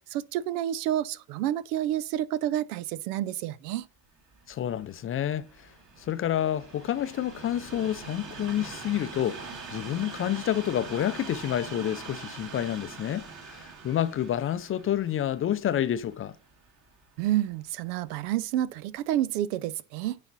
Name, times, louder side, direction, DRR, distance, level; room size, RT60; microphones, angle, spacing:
voice 1, 0.1-3.9 17.2-20.2, right 12 dB, 85° right, 0.6 m, -29 dB
Train, 4.2-17.4 18.1-18.2, right 4 dB, 40° right, 2.1 m, -44 dB
voice 2, 4.5-5.5 6.0-16.3, left 11 dB, 30° left, 0.4 m, -29 dB
9.6 x 4.2 x 4.0 m
supercardioid pair, 95°, 45 cm